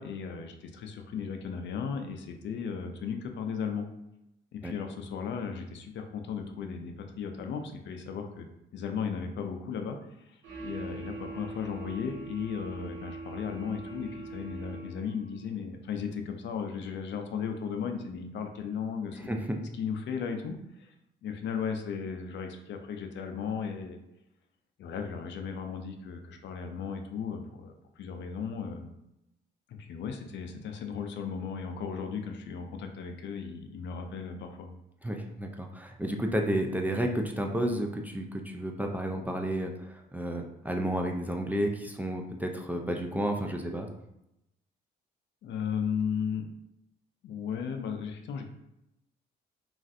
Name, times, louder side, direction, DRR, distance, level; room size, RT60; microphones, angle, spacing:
voice 1, 0.0-3.9 4.5-8.5 8.7-19.3 19.6-20.9 21.2-24.0 24.8-28.9 29.7-34.7 45.4-46.5 47.2-48.5, left 6 dB, 65° left, 5 dB, 0.4 m, -36 dB
sound 1, 10.4-15.3, right 3 dB, 75° right, 0.7 m, -42 dB
voice 2, 19.3-19.6 35.0-43.9, right 1 dB, 10° right, 2 dB, 0.3 m, -31 dB
3.1 x 2.4 x 2.6 m, 0.85 s
cardioid pair, 90°, 20 cm